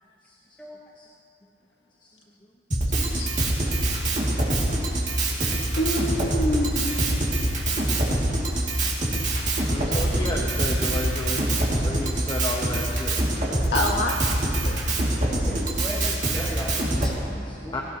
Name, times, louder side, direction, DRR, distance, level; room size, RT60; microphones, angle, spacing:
Drum kit, 2.7-17.1, right 1 dB, 45° right, 2.3 m, -25 dB
voice 1, 2.9-3.3 3.9-4.0 5.8-7.2 13.7-14.2 14.6-14.8, left 1 dB, 90° left, -1 dB, 1.7 m, -27 dB
voice 2, 5.3-5.6 9.7-13.2 14.6-15.0 17.2-17.8, left 1 dB, 25° left, -2 dB, 1.0 m, -33 dB
voice 3, 15.4-17.7, equal, 5° left, -7 dB, 2.7 m, -35 dB
18.5 x 17.5 x 2.9 m, 2.6 s
head